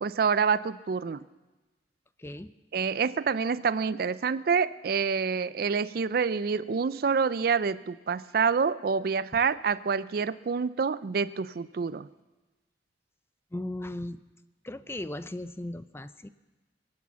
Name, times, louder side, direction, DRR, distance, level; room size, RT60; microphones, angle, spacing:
voice 1, 0.0-1.2 2.7-12.1, right 5 dB, 55° right, 16 dB, 0.4 m, -27 dB
voice 2, 2.2-2.5 13.5-14.2 14.6-16.3, left 1 dB, 15° left, 13 dB, 0.4 m, -37 dB
23.0 x 8.7 x 7.1 m, 1.2 s
head